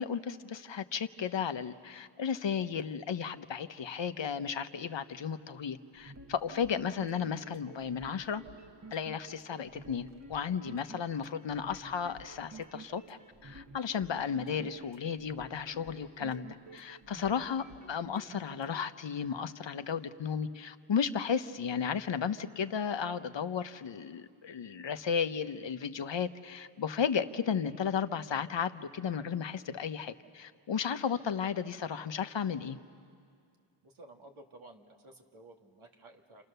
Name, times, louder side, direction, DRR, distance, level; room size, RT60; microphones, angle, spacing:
voice 1, 0.0-8.4 8.9-32.8, left 7 dB, 60° left, 10 dB, 1.0 m, -34 dB
sound 1, 5.9-18.8, right 3 dB, 35° right, 1.7 m, -51 dB
voice 2, 33.8-36.4, right 2 dB, 75° right, 2 dB, 2.5 m, -54 dB
29.0 x 28.5 x 6.8 m, 2.2 s
wide cardioid pair, 75°, 49 cm